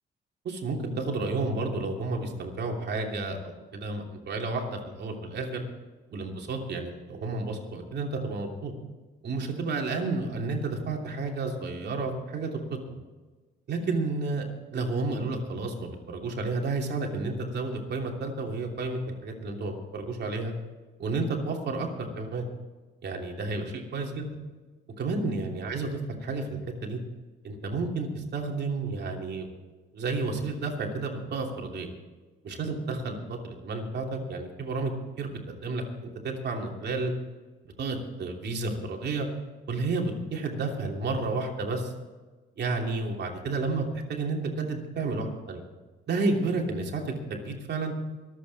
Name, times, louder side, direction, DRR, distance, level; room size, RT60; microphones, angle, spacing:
voice 1, 0.4-5.6 6.1-8.7 9.2-12.8 13.7-20.5 21.0-22.4 23.0-24.3 25.0-25.9 26.2-26.5 26.8-27.0 27.4-29.5 29.9-31.9 32.4-34.9 35.2-37.1 37.8-39.3 39.7-41.9 42.6-43.8 44.1-45.6 46.1-47.9, right 3 dB, 60° right, 1 dB, 3.0 m, -31 dB
25.0 x 8.5 x 4.2 m, 1.3 s
cardioid pair, 90°, 20 cm